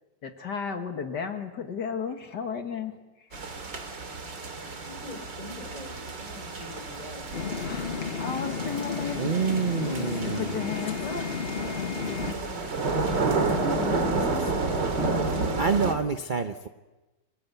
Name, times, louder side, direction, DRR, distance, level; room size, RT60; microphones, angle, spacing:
voice 1, 0.2-3.0 7.7-9.2 10.2-11.3 13.5-14.5, left 6 dB, 70° left, 6 dB, 2.3 m, -34 dB
sound 1, 3.3-15.9, right 3 dB, 85° right, 3.3 m, -31 dB
voice 2, 4.7-8.1 12.0-12.8, left 2 dB, 20° left, 5 dB, 4.2 m, -45 dB
sound 2, 7.3-12.3, left 6 dB, 40° left, 1.0 m, -33 dB
voice 3, 9.2-10.6 14.0-14.2 14.5-14.8 15.6-16.7, right 6 dB, 35° right, 8 dB, 0.8 m, -28 dB
28.0 x 20.5 x 8.2 m, 1.1 s
omnidirectional pair, 1.9 m